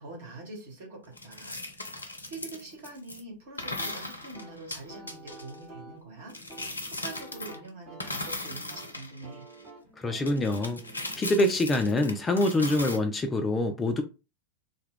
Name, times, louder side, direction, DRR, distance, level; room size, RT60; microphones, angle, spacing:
voice 1, 0.0-1.6 1.9-6.3 6.6-9.4, right 2 dB, 60° right, 1.1 m, -44 dB
sound 1, 1.2-3.2 3.6-5.5 6.3-7.7 8.0-9.6 10.3-13.0, left 2 dB, 80° left, 0.5 m, -38 dB
sound 2, 3.8-12.4, right 2 dB, 20° right, 1.0 m, -50 dB
voice 2, 10.0-10.8 11.2-14.0, left 1 dB, 15° left, 0.3 m, -25 dB
2.2 x 2.0 x 3.4 m
figure-of-eight pair, 90°, 0 cm